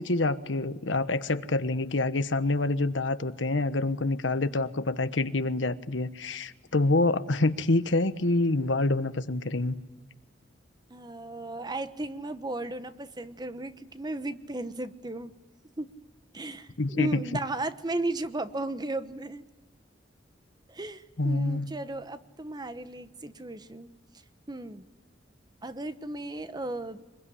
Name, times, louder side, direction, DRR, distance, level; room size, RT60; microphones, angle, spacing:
voice 1, 0.0-9.7 16.8-17.2 21.2-21.7, left 2 dB, 85° left, 11 dB, 1.2 m, -26 dB
voice 2, 10.9-15.3 15.8-15.9 16.3-19.4 20.7-23.9 24.5-24.9 25.6-27.0, right 2 dB, 20° right, 11 dB, 1.0 m, -35 dB
25.0 x 22.0 x 10.0 m, 1.1 s
head